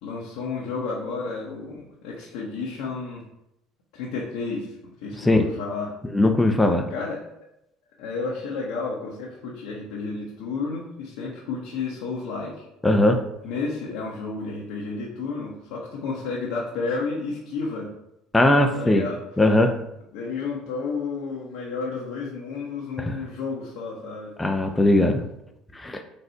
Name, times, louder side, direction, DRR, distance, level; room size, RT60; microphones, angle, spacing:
voice 1, 0.0-3.3 3.9-5.9 6.9-7.2 8.0-12.6 13.4-17.9 18.7-19.2 20.1-24.3, left 4 dB, 75° left, -4 dB, 0.9 m, -31 dB
voice 2, 5.2-5.5 6.1-6.9 12.8-13.3 18.3-19.1 19.4-19.8 23.0-23.2 24.4-25.2 25.7-26.0, left 1 dB, 10° left, 5 dB, 0.5 m, -19 dB
4.1 x 2.6 x 4.4 m, 0.84 s
hypercardioid pair, 75°, 0 cm